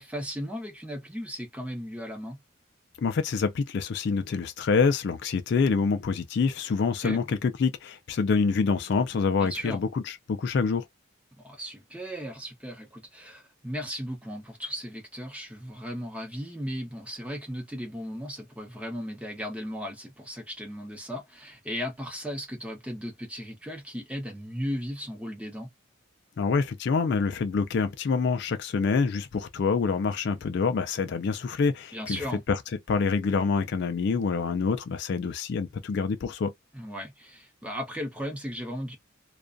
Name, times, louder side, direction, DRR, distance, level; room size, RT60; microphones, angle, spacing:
voice 1, 0.0-2.4 7.0-7.2 9.4-9.8 11.4-25.7 31.9-32.4 36.7-39.0, equal, 5° right, 0.7 m, -36 dB
voice 2, 3.0-10.8 26.4-32.6 32.9-36.5, left 5 dB, 55° left, 0.3 m, -26 dB
2.4 x 2.2 x 2.4 m
head